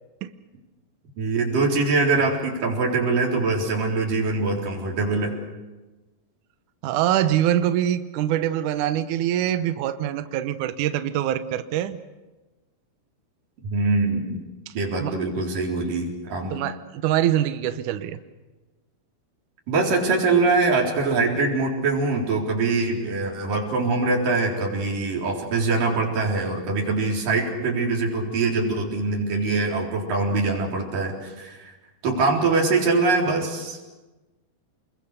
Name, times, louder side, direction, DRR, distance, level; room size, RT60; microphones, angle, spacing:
voice 1, 1.2-5.4 13.6-14.4 14.7-16.6 19.7-31.7 32.0-33.8, right 3 dB, 55° right, -1 dB, 5.5 m, -23 dB
voice 2, 6.8-12.0 14.7-14.8 15.0-15.1 16.5-18.2, right 11 dB, 85° right, 10 dB, 1.7 m, -24 dB
29.0 x 21.5 x 6.7 m, 1.1 s
omnidirectional pair, 4.9 m